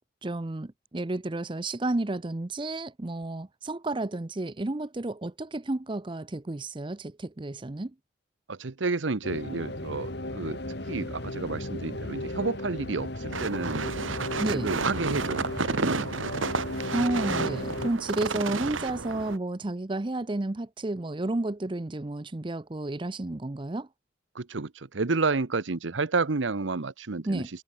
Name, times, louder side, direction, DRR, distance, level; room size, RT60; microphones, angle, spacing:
voice 1, 0.2-7.9 14.4-14.7 16.9-23.9 27.3-27.5, right 2 dB, 25° right, 0.6 m, -31 dB
voice 2, 8.5-10.6 10.9-13.9 14.5-15.5 15.7-16.1 24.3-27.4, right 3 dB, 75° right, 0.9 m, -30 dB
sound 1, 9.2-17.9, left 1 dB, 55° left, 2.9 m, -35 dB
sound 2, 13.3-19.4, right 4 dB, 90° right, 1.7 m, -31 dB
head